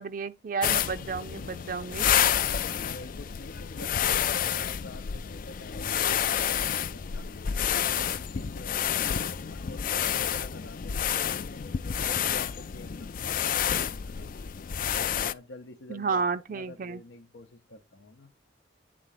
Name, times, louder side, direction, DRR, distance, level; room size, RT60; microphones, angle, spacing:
voice 1, 0.0-2.1 15.9-17.0, right 5 dB, 45° right, 0.4 m, -31 dB
sound 1, 0.6-15.3, left 9 dB, 50° left, 0.4 m, -29 dB
voice 2, 2.8-7.4 7.7-11.6 12.0-13.5 13.9-14.3 14.9-18.3, left 2 dB, 80° left, 0.8 m, -47 dB
9.3 x 3.7 x 5.7 m
head